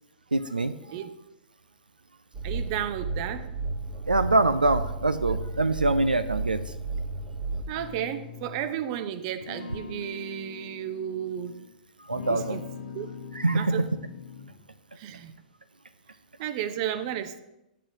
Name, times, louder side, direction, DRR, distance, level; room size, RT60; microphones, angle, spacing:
voice 1, 0.3-0.7 4.1-6.6 12.1-12.6 13.4-13.9, right 2 dB, 90° right, 11 dB, 0.3 m, -24 dB
sound 1, 2.3-7.6, right 3 dB, 20° right, 1.0 m, -33 dB
voice 2, 2.4-3.5 7.5-11.5 12.3-12.6 12.9-13.1 13.5-13.9 15.0-15.3 16.4-17.4, right 10 dB, 45° right, 11 dB, 0.7 m, -33 dB
sound 2, 7.7-8.8 9.4-11.7 12.1-14.7, left 6 dB, 80° left, 0.8 m, -42 dB
10.0 x 7.5 x 2.7 m, 0.90 s
figure-of-eight pair, 110°, 5 cm